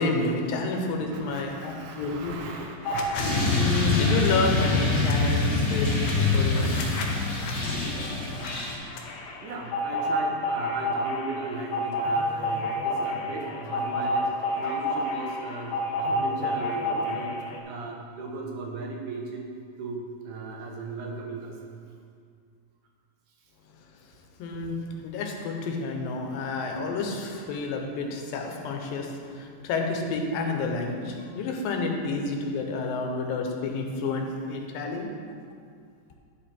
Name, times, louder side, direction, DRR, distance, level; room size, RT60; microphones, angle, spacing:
voice 1, 0.0-2.4 3.6-6.8 24.4-24.8 25.0-35.1, left 3 dB, 90° left, 2 dB, 2.6 m, -29 dB
voice 2, 1.1-3.2 6.3-6.4 6.9-7.4 7.9-8.1 8.5-8.9 9.4-17.3 17.6-19.5 19.8-21.6 27.3-27.5, right 3 dB, 75° right, 0 dB, 2.3 m, -37 dB
sound 1, 2.8-3.2 3.5-17.6, left 1 dB, 75° left, 1.7 m, -30 dB
sound 2, 3.1-8.7, left 3 dB, 40° left, 2.6 m, -25 dB
10.5 x 5.1 x 4.3 m, 2.2 s
omnidirectional pair, 4.0 m